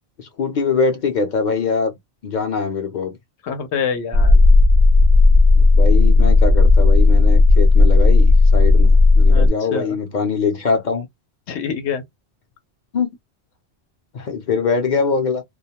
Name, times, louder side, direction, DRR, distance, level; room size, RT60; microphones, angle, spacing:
voice 1, 0.2-1.9 2.2-3.2 5.6-11.1 12.9-13.1 14.1-15.4, left 5 dB, 50° left, 0.6 m, -22 dB
voice 2, 3.4-4.4 9.3-10.0 11.5-12.0, left 7 dB, 85° left, 0.9 m, -26 dB
sound 1, 4.1-9.5, left 3 dB, 55° right, 0.7 m, -12 dB
2.3 x 2.1 x 2.8 m
omnidirectional pair, 1.1 m